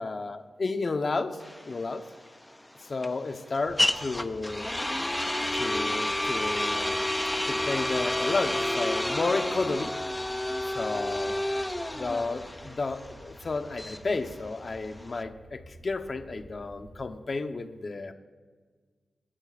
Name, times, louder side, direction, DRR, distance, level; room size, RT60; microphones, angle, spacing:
voice 1, 0.0-2.0 2.8-4.7 5.5-7.0 7.5-9.9 10.7-11.3 11.8-18.1, left 3 dB, 40° left, 7 dB, 0.9 m, -32 dB
sound 1, 1.4-15.2, left 1 dB, 10° left, 0.4 m, -30 dB
sound 2, 3.6-17.1, right 1 dB, 85° right, 3.3 m, -52 dB
26.0 x 12.5 x 2.5 m, 1.5 s
wide cardioid pair, 115°, 0 cm